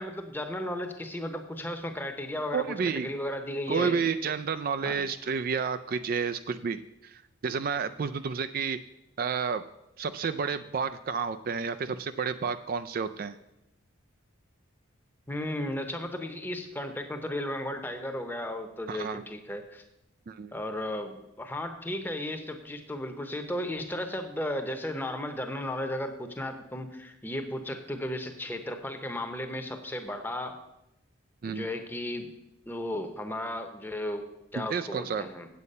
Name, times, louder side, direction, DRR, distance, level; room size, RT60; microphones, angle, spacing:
voice 1, 0.0-4.0 4.8-5.0 15.3-19.8 20.5-30.6 31.5-32.3 32.7-34.3 34.5-35.5, left 1 dB, 10° left, 6 dB, 0.8 m, -35 dB
voice 2, 2.5-3.1 3.7-8.8 9.2-9.7 10.0-13.4 18.9-19.2 20.3-20.5 31.4-31.7 34.6-35.3, right 6 dB, 45° right, 11 dB, 0.3 m, -31 dB
8.3 x 8.2 x 5.4 m, 0.88 s
head